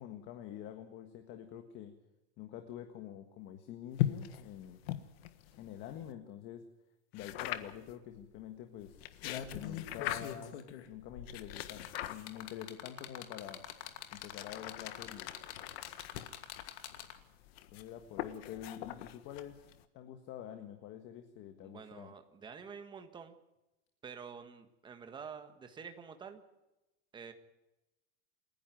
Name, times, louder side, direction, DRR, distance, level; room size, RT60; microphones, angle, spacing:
voice 1, 0.0-1.9 2.4-4.8 5.6-6.6 7.1-9.0 9.5-10.6 10.8-13.6 14.1-15.3 17.7-19.7 19.9-22.1, left 10 dB, 35° left, 7 dB, 1.6 m, -47 dB
sound 1, 3.9-6.1 7.2-7.9 8.8-10.5 11.3-12.6 13.4-19.8, left 13 dB, 60° left, 1.6 m, -41 dB
sound 2, 7.7-7.8 8.1-8.4 8.9-17.4 18.5-18.6, left 10 dB, 80° left, 2.6 m, -45 dB
voice 2, 21.6-23.3 24.0-26.4 27.1-27.3, right 6 dB, 15° right, 7 dB, 1.5 m, -48 dB
28.5 x 11.0 x 9.2 m, 0.99 s
supercardioid pair, 165°, 34 cm